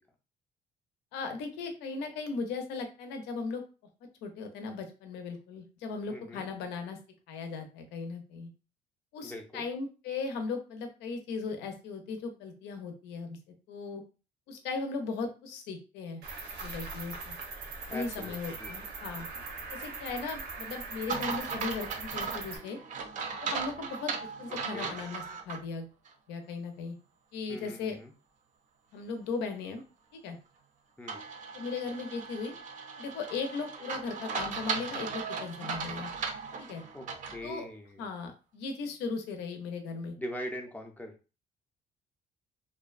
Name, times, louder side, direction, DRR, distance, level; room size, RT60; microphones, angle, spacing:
voice 1, 1.1-3.6 4.2-7.0 7.3-8.5 9.1-13.4 13.7-14.0 14.5-16.2 16.6-17.4 17.9-19.3 19.7-22.8 23.4-25.9 26.3-27.0 27.3-28.0 28.9-29.8 30.1-30.4 31.5-32.5 33.0-36.1 36.6-36.8 37.4-37.7 38.0-40.1, left 4 dB, 90° left, 6 dB, 0.6 m, -37 dB
voice 2, 6.1-6.4 9.2-9.7 17.9-18.7 24.7-24.9 27.5-28.1 31.0-31.2 36.9-38.1 40.2-41.1, equal, 10° left, 2 dB, 0.4 m, -41 dB
Cricket, 16.2-22.6, right 4 dB, 85° right, 0.8 m, -41 dB
sound 1, 21.1-25.6 26.0-26.1 31.1-37.4, right 5 dB, 50° right, 0.5 m, -37 dB
2.7 x 2.2 x 2.3 m, 0.32 s
cardioid pair, 110°, 17 cm